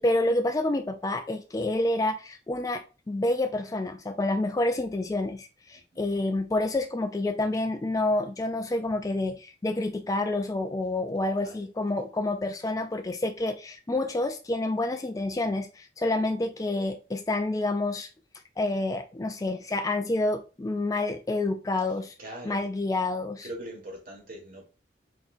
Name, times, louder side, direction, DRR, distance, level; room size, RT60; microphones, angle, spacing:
voice 1, 0.0-18.1 18.6-22.1 22.4-23.5, left 2 dB, 20° left, 0.3 m, -28 dB
voice 2, 11.2-11.7 22.2-22.6 23.4-24.6, right 1 dB, 50° right, 1.7 m, -42 dB
4.2 x 4.1 x 2.6 m
head